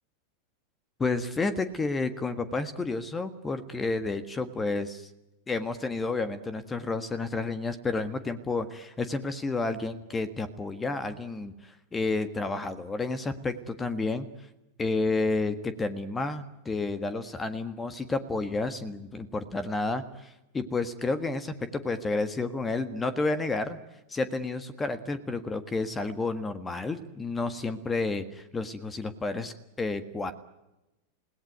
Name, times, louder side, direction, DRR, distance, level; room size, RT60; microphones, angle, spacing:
voice 1, 1.0-5.1 5.5-14.3 14.8-23.8 24.1-30.3, left 3 dB, 15° left, 12 dB, 1.6 m, -31 dB
29.0 x 18.0 x 9.3 m, 0.98 s
figure-of-eight pair, 90°, 0 cm